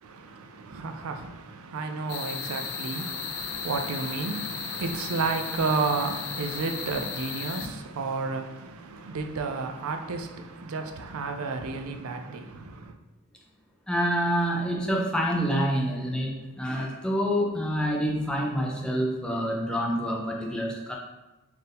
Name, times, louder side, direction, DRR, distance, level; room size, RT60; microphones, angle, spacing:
voice 1, 0.0-12.9, right 4 dB, 85° right, 0.4 m, -32 dB
sound 1, 2.1-7.7, left 7 dB, 70° left, 0.4 m, -35 dB
voice 2, 13.9-21.0, equal, 5° left, 0.6 m, -27 dB
4.3 x 2.6 x 3.4 m
head